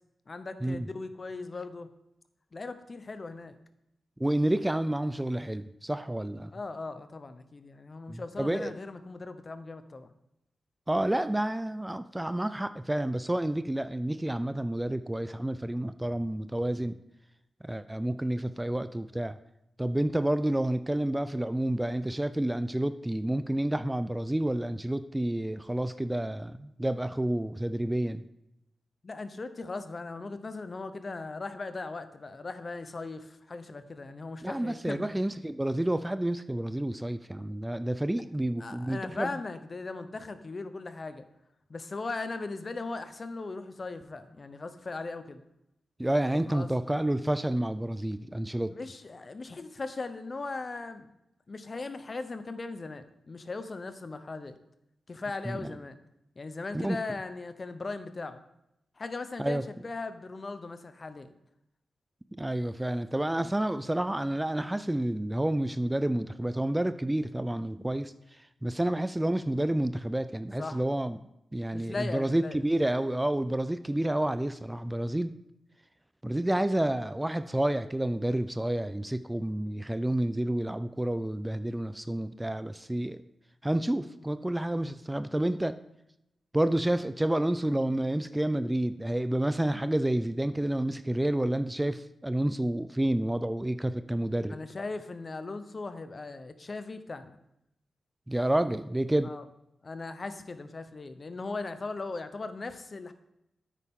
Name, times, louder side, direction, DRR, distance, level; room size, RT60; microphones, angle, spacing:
voice 1, 0.3-1.9 2.5-3.6 6.5-10.1 29.0-35.1 38.6-41.3 41.7-45.4 46.5-46.7 48.7-51.1 51.5-54.6 55.1-56.0 56.4-58.4 59.0-61.3 68.9-69.0 70.6-70.8 71.7-72.6 94.5-97.4 99.2-99.4 99.8-103.1, left 3 dB, 45° left, 10 dB, 0.8 m, -38 dB
voice 2, 4.2-6.5 8.1-8.7 10.9-17.0 17.6-19.4 19.8-28.3 34.4-39.4 46.0-48.7 55.4-55.7 56.7-57.0 59.4-59.6 62.4-68.1 68.6-71.2 71.5-75.3 76.2-83.2 83.6-85.8 86.5-94.6 98.3-99.3, right 1 dB, 15° right, 12 dB, 0.4 m, -29 dB
9.7 x 8.4 x 3.7 m, 0.83 s
cardioid pair, 65°, 0 cm